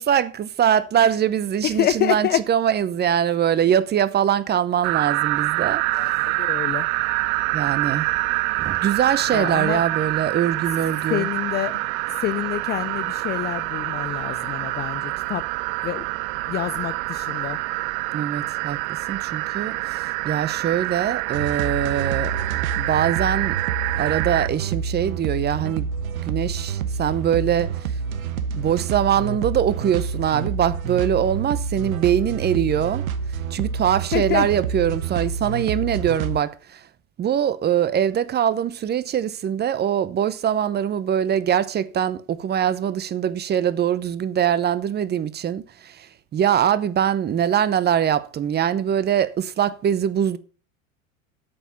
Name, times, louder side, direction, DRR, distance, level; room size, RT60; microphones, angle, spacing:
voice 1, 0.0-5.8 7.5-8.1 8.6-11.3 18.1-22.4 22.8-23.6 24.0-25.9 26.3-27.7 28.5-33.0 33.5-36.8 37.2-46.1 46.3-50.4, right 9 dB, 25° right, 0.8 m, -22 dB
voice 2, 1.6-2.4 6.0-6.1 6.4-6.8 9.3-9.8 11.1-11.7 12.2-15.4 15.8-16.0 16.5-17.6 34.1-34.5, left 13 dB, 25° left, 0.4 m, -26 dB
sound 1, 4.8-24.5, right 23 dB, 40° right, 0.4 m, -26 dB
sound 2, 21.3-36.4, right 6 dB, 80° right, 1.1 m, -28 dB
8.6 x 7.2 x 6.9 m
hypercardioid pair, 95°, 41 cm